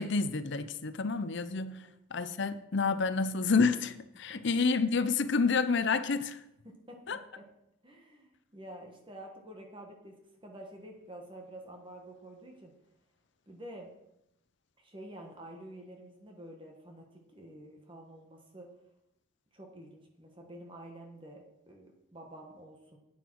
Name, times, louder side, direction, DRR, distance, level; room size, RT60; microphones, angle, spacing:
voice 1, 0.0-1.7 2.1-6.4 7.1-7.2, left 4 dB, 55° left, 12 dB, 0.6 m, -29 dB
voice 2, 1.6-2.0 6.6-7.4 7.8-12.7 13.5-13.9 14.8-18.7 19.5-23.0, right 1 dB, 25° right, 2 dB, 1.3 m, -49 dB
10.0 x 8.9 x 4.7 m, 0.82 s
head